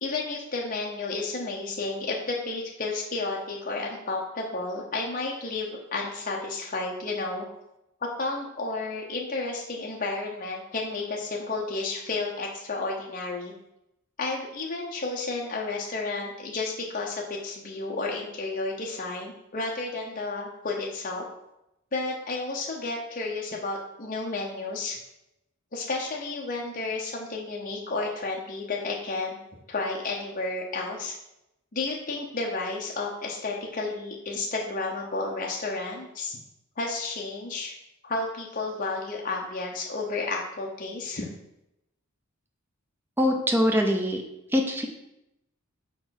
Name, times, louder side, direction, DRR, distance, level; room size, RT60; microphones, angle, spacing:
voice 1, 0.0-7.5 8.2-13.5 14.2-21.3 21.9-25.0 25.7-29.4 29.7-31.2 31.7-36.4 36.8-37.7 38.0-41.3, left 3 dB, 40° left, -2 dB, 0.8 m, -32 dB
voice 2, 43.2-44.2 44.5-44.9, equal, 10° right, 2 dB, 0.5 m, -23 dB
4.6 x 4.5 x 5.8 m, 0.86 s
head